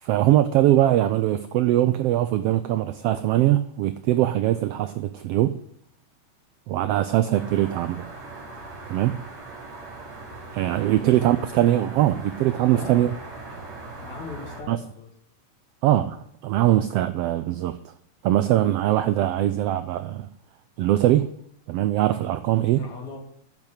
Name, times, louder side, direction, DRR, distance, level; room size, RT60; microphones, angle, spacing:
voice 1, 0.0-5.6 6.7-8.1 8.9-9.2 10.5-13.1 14.7-14.8 15.8-17.9 18.2-20.3 20.8-21.3 21.7-22.8, right 13 dB, 85° right, 1.3 m, -22 dB
sound 1, 7.3-14.6, right 3 dB, 65° right, 4.2 m, -40 dB
voice 2, 10.9-11.6 12.7-13.1 14.0-15.1 22.8-23.2, left 4 dB, 75° left, 3.8 m, -39 dB
9.6 x 7.3 x 7.9 m
omnidirectional pair, 3.3 m